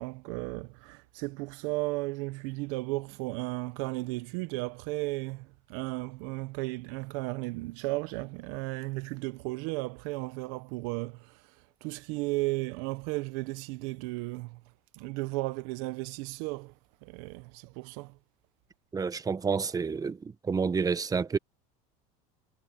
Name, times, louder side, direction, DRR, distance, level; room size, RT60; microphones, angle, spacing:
voice 1, 0.0-11.4 11.8-14.6 14.9-16.7 17.0-18.2, right 23 dB, 75° right, 1.1 m, -34 dB
voice 2, 18.9-21.4, right 5 dB, 20° right, 1.3 m, -29 dB
supercardioid pair, 115°, 18 cm